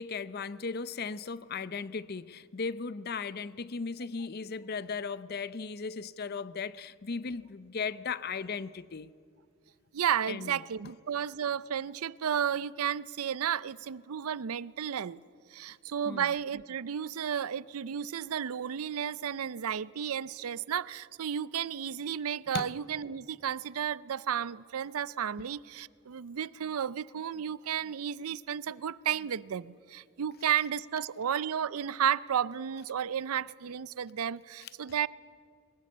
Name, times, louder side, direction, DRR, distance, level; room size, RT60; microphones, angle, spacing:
voice 1, 0.0-9.1 10.3-10.6 16.1-16.3 22.5-22.7 25.4-25.5 34.6-34.7, left 5 dB, 45° left, 0.6 m, -37 dB
voice 2, 9.9-15.2 15.5-35.1, right 8 dB, 80° right, 0.5 m, -33 dB
22.0 x 20.0 x 8.4 m
head